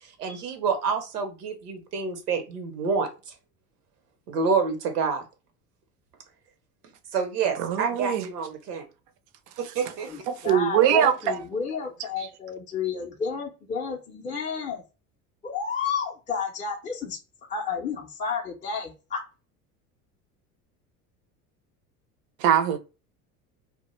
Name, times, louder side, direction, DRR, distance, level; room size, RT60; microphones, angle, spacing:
voice 1, 0.0-3.3 4.3-5.2 7.1-8.8 9.6-10.1, right 5 dB, 80° right, 0.7 m, -28 dB
voice 2, 7.6-8.3 10.3-11.4 12.2-12.3 22.4-22.8, right 9 dB, 45° right, 0.4 m, -22 dB
voice 3, 10.4-14.8 15.4-17.2 17.5-19.2, left 6 dB, 20° left, 0.4 m, -31 dB
2.1 x 2.1 x 2.9 m
hypercardioid pair, 75°, 46 cm